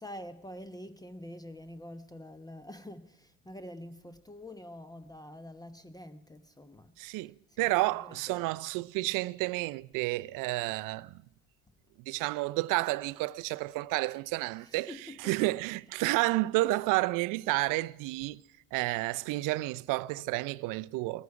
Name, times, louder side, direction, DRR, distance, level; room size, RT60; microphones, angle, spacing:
voice 1, 0.0-8.6 14.7-15.4, left 1 dB, 10° left, 1.0 m, -47 dB
voice 2, 7.0-11.2 12.1-18.4 18.7-21.2, right 20 dB, 55° right, 0.6 m, -31 dB
19.5 x 14.0 x 4.8 m
hypercardioid pair, 70°, 39 cm